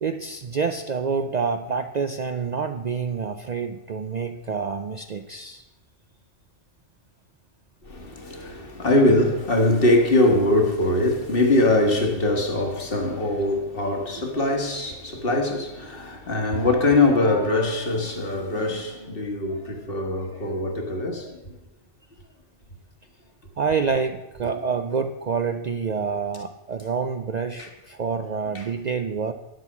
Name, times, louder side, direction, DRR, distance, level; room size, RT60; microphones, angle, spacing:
voice 1, 0.0-5.6 18.5-18.7 23.6-29.3, right 5 dB, 50° right, 0.5 m, -27 dB
voice 2, 7.8-21.6 24.6-24.7 27.6-27.7 28.5-28.7, left 2 dB, 55° left, 1.7 m, -22 dB
10.0 x 7.7 x 7.2 m
omnidirectional pair, 1.2 m